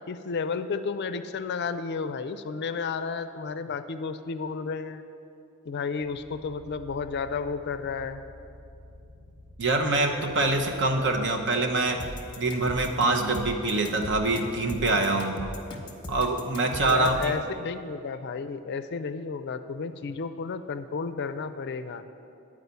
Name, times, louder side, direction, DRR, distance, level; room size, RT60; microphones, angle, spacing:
voice 1, 0.1-5.0 5.7-8.2 16.9-22.0, left 5 dB, 50° left, 11 dB, 0.4 m, -32 dB
sound 1, 6.0-15.1, left 1 dB, 75° right, 2.4 m, -50 dB
voice 2, 9.6-12.0 12.4-15.4 16.1-17.4, right 2 dB, 55° right, 3 dB, 0.9 m, -25 dB
sound 2, 12.0-17.4, left 2 dB, 20° left, 1.0 m, -38 dB
10.0 x 4.8 x 8.1 m, 2.7 s
head